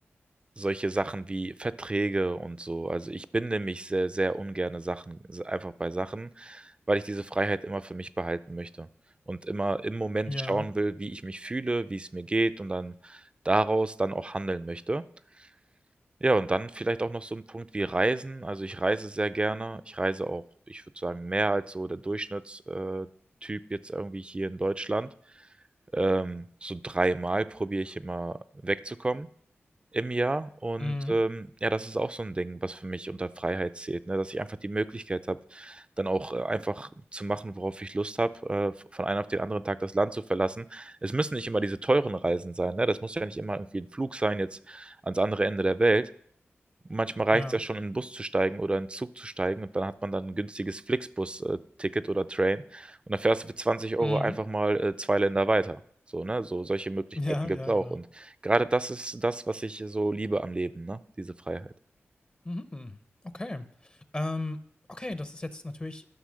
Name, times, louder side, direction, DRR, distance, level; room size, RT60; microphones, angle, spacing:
voice 1, 0.6-8.9 9.3-15.0 16.2-20.4 20.7-23.1 23.4-25.1 25.9-28.4 28.6-29.3 29.9-46.1 46.9-55.8 56.1-57.0 57.4-61.7, right 2 dB, 25° right, 14 dB, 0.4 m, -29 dB
voice 2, 10.3-10.7 30.8-31.1 47.3-47.6 54.0-54.4 57.2-58.0 62.4-63.0 63.2-64.6 64.9-66.1, left 2 dB, 25° left, 12 dB, 0.6 m, -34 dB
11.5 x 6.1 x 6.3 m, 0.65 s
wide cardioid pair, 90°, 5 cm